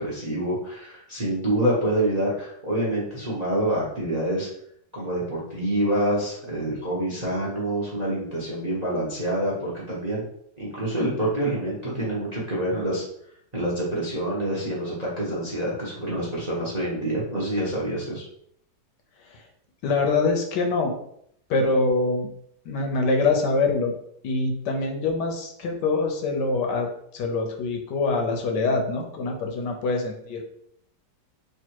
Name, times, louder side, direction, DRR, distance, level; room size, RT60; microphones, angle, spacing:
voice 1, 0.0-4.5 4.9-10.2 10.6-13.0 13.5-18.2, right 1 dB, 30° right, -5 dB, 0.8 m, -27 dB
voice 2, 19.2-19.5 19.8-21.0 21.5-22.3 22.6-24.0 24.2-30.4, left 3 dB, 75° left, 3 dB, 1.3 m, -24 dB
3.4 x 2.5 x 4.5 m, 0.68 s
omnidirectional pair, 2.0 m